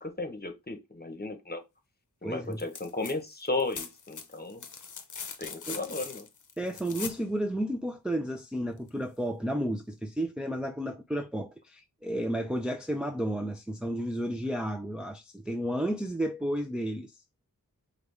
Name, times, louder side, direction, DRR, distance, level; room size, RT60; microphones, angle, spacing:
voice 1, 0.0-1.6 2.2-4.6 5.4-6.3, left 3 dB, 30° left, 1.0 m, -34 dB
voice 2, 2.2-2.6 5.7-5.8 6.6-17.1, right 1 dB, 5° right, 0.4 m, -32 dB
sound 1, 2.5-3.1 3.4-7.2 8.9-9.0, left 5 dB, 60° left, 0.7 m, -41 dB
5.1 x 2.4 x 3.3 m
wide cardioid pair, 65°, 34 cm